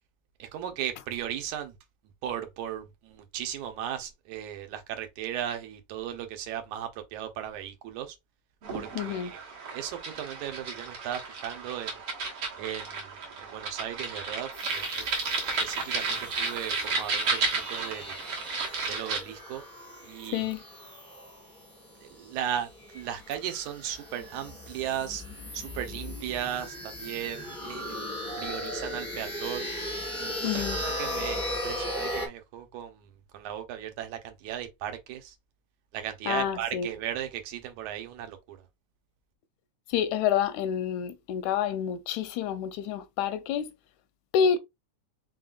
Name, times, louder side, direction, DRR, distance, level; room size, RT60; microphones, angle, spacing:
voice 1, 0.4-1.7 2.2-8.2 8.7-9.4 9.7-12.0 12.6-15.0 15.5-18.2 18.9-19.6 20.0-20.5 22.0-25.2 25.5-28.0 28.4-29.7 30.2-35.4 35.9-38.7, right 10 dB, 85° right, 2.3 m, -36 dB
sound 1, 8.6-19.2, right 4 dB, 55° right, 2.0 m, -33 dB
voice 2, 9.0-9.3 20.3-20.6 30.4-30.8 36.3-36.9 39.9-43.7 44.3-44.6, left 8 dB, 85° left, 2.0 m, -28 dB
sound 2, 14.5-32.3, left 1 dB, 5° left, 0.5 m, -38 dB
5.0 x 3.9 x 2.4 m
omnidirectional pair, 3.3 m